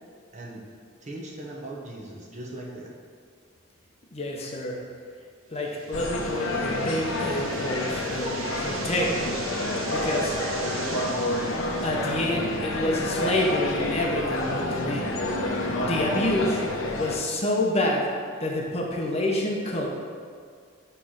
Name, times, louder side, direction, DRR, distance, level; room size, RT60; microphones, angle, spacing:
voice 1, 0.3-0.7 1.0-2.9, right 1 dB, 35° right, -2 dB, 1.1 m, -39 dB
voice 2, 4.1-4.8 5.5-9.5 9.9-10.4 11.8-15.2 15.8-16.6 17.0-18.1 18.4-19.9, left 1 dB, 30° left, 0 dB, 0.8 m, -28 dB
sound 1, 5.6-12.5, right 5 dB, 80° right, 0.7 m, -40 dB
sound 2, 5.9-17.2, left 1 dB, 85° left, 0.8 m, -29 dB
8.5 x 3.3 x 5.8 m, 2.1 s
head